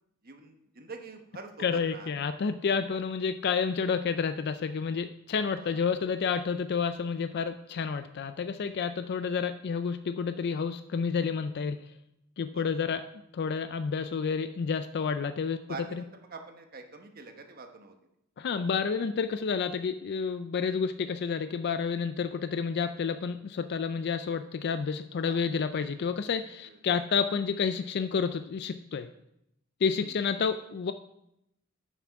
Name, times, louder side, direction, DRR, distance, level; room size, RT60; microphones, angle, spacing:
voice 1, 0.2-2.1 5.6-5.9 12.5-12.6 15.5-18.0 25.2-25.4 26.6-26.8 30.0-30.2, right 4 dB, 45° right, 4 dB, 1.1 m, -45 dB
voice 2, 1.6-11.8 12.4-13.0 13.3-15.6 15.9-16.0 18.4-29.1 29.8-30.9, left 5 dB, 55° left, 10 dB, 0.4 m, -30 dB
7.2 x 7.0 x 5.7 m, 0.81 s
head